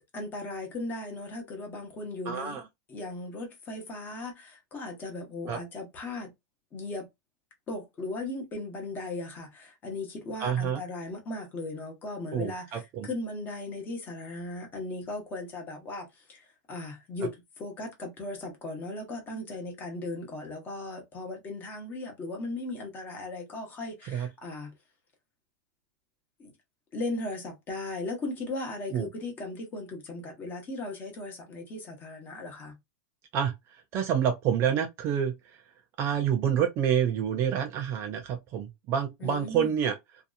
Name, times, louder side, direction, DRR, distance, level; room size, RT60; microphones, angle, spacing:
voice 1, 0.1-2.6 2.9-6.3 6.7-7.1 7.7-24.7 26.4-26.5 26.9-32.8 39.2-39.7, left 2 dB, 20° left, 0.9 m, -37 dB
voice 2, 2.3-2.6 5.5-5.6 10.4-10.8 12.3-13.1 24.0-24.3 28.9-29.1 33.3-35.6 36.0-40.0, right 8 dB, 25° right, 0.3 m, -28 dB
2.7 x 2.3 x 2.3 m
supercardioid pair, 170°, 9 cm